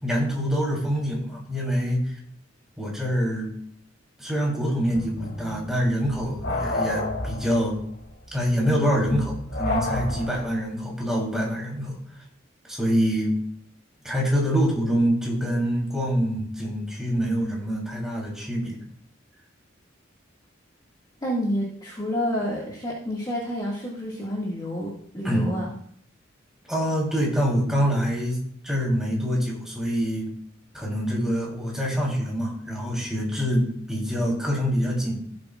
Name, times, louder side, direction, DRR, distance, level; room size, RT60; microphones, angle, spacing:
voice 1, 0.0-2.1 2.8-3.5 4.2-7.8 8.3-11.9 12.7-13.3 14.0-18.8 25.2-25.5 26.7-30.3 30.7-35.2, equal, 5° right, -3 dB, 3.2 m, -25 dB
sound 1, 4.9-10.6, left 2 dB, 65° left, 3.2 m, -31 dB
voice 2, 21.2-25.7, equal, 20° left, -5 dB, 1.9 m, -29 dB
16.5 x 7.7 x 2.4 m, 0.63 s
head